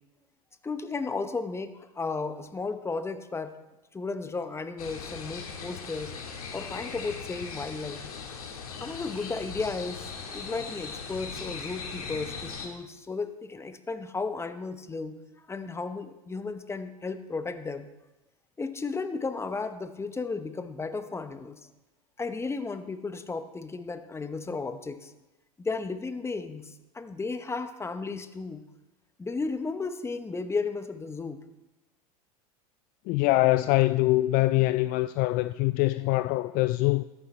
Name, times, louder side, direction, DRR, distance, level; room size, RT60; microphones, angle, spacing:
voice 1, 0.6-3.5 3.9-6.1 6.5-8.0 8.8-15.2 15.5-17.9 18.6-21.6 22.2-25.1 25.6-28.6 29.2-31.4, left 4 dB, 15° left, 1.0 m, -34 dB
sound 1, 4.8-12.7, left 5 dB, 75° left, 1.8 m, -39 dB
voice 2, 33.1-37.0, left 18 dB, 50° left, 0.4 m, -24 dB
14.0 x 13.5 x 3.3 m
hypercardioid pair, 85°, 19 cm